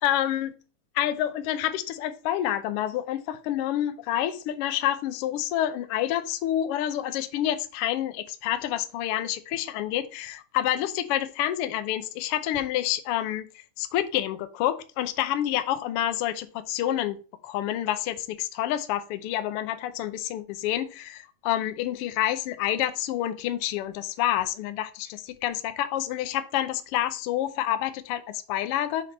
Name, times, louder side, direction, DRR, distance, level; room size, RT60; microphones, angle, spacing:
voice 1, 0.0-0.5 0.9-13.4 13.8-17.2 17.4-29.1, left 12 dB, 85° left, 10 dB, 1.2 m, -28 dB
6.4 x 4.1 x 5.3 m, 0.36 s
omnidirectional pair, 3.5 m